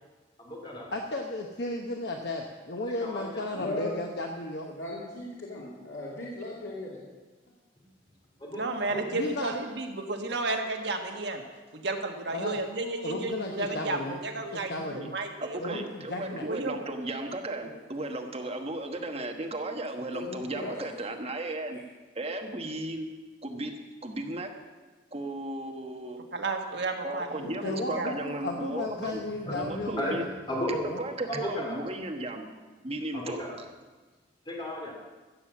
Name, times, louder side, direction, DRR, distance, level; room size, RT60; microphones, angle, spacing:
voice 1, 0.4-0.9 2.8-3.4 8.4-9.0 29.4-30.2 30.5-30.8 31.3-31.8 33.1-33.6 34.5-34.9, equal, 25° left, -1 dB, 2.4 m, -35 dB
voice 2, 0.9-4.7 9.1-9.5 12.3-12.6 13.0-14.2 14.5-15.1 15.6-16.4 27.6-30.2 30.7-31.0, left 2 dB, 60° left, 2 dB, 1.0 m, -34 dB
voice 3, 3.5-3.9 4.6-7.0 20.1-20.7 21.7-21.8, left 2 dB, 90° left, -6 dB, 2.6 m, -37 dB
voice 4, 8.5-11.4 11.7-15.8 16.3-16.8 26.3-28.1, right 2 dB, 65° right, 3 dB, 1.4 m, -33 dB
voice 5, 14.7-15.1 15.4-21.8 22.1-23.1 23.4-23.7 24.0-24.5 25.1-26.2 27.0-29.2 29.5-30.2 30.7-32.4 32.8-33.4, right 2 dB, 35° right, 3 dB, 1.3 m, -35 dB
15.0 x 7.0 x 7.3 m, 1.3 s
head